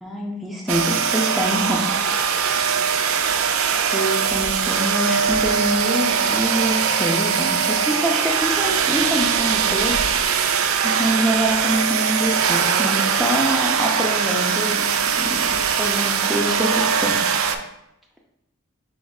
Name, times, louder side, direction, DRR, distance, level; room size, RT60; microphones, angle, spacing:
voice 1, 0.0-1.8 2.1-2.2 3.9-10.0 10.8-14.8 15.2-15.4 15.8-17.4, equal, ahead, -3 dB, 0.4 m, -25 dB
sound 1, 0.7-17.6, right 7 dB, 80° right, 0.4 m, -21 dB
6.1 x 3.6 x 2.3 m, 0.84 s
head